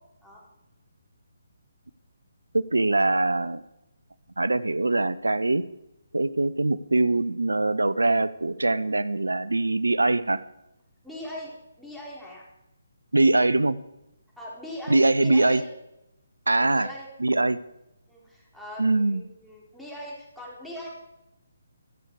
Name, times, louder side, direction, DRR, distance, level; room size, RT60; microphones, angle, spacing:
voice 1, 2.5-3.6 4.4-5.6 6.1-10.4 13.1-13.8 14.9-15.6 16.5-16.9 17.2-17.6 18.8-19.2, right 2 dB, 85° right, 18 dB, 0.7 m, -22 dB
voice 2, 11.0-12.4 14.4-15.7 16.7-17.5 18.1-20.9, left 1 dB, ahead, -5 dB, 4.4 m, -41 dB
24.5 x 8.2 x 4.8 m, 0.91 s
figure-of-eight pair, 145°, 0 cm